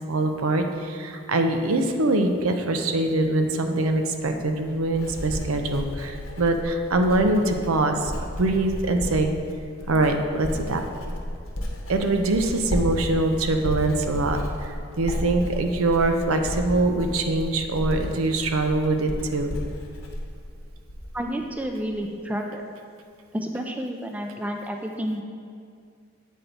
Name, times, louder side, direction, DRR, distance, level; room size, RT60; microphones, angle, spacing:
voice 1, 0.1-8.1 8.4-9.3 9.9-10.8 11.9-19.5, right 2 dB, 90° right, 5 dB, 0.6 m, -23 dB
Writing, 4.3-21.3 21.5-22.0, left 1 dB, 75° left, 0.9 m, -33 dB
voice 2, 21.1-22.6 23.3-25.2, equal, 5° right, 3 dB, 0.3 m, -30 dB
8.2 x 4.4 x 4.0 m, 2.3 s
head